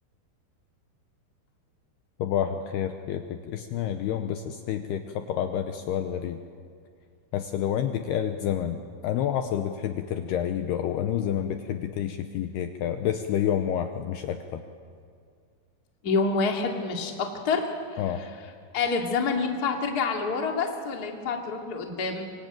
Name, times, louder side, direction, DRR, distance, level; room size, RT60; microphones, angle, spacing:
voice 1, 2.2-6.4 7.3-8.8 9.0-14.6 18.0-18.2, left 10 dB, 75° left, 7 dB, 2.6 m, -29 dB
voice 2, 16.0-22.3, left 4 dB, 30° left, 2 dB, 1.8 m, -28 dB
25.0 x 24.5 x 9.0 m, 2.3 s
omnidirectional pair, 5.5 m